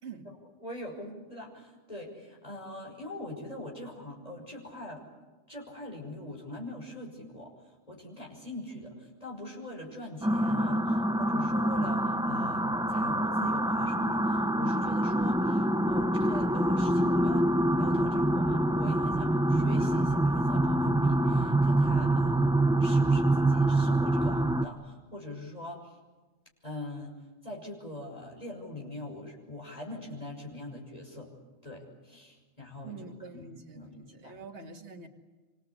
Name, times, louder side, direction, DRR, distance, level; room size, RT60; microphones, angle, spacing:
voice 1, 0.0-0.3 32.8-35.1, right 4 dB, 50° right, 3 dB, 2.3 m, -45 dB
voice 2, 0.6-5.0 5.5-26.0 26.6-27.2 27.4-31.3 31.6-33.4 33.7-34.4, left 1 dB, 25° left, -2 dB, 6.0 m, -42 dB
sound 1, 10.2-24.6, right 1 dB, 5° right, 0.5 m, -26 dB
26.5 x 26.0 x 8.4 m, 1.3 s
omnidirectional pair, 1.4 m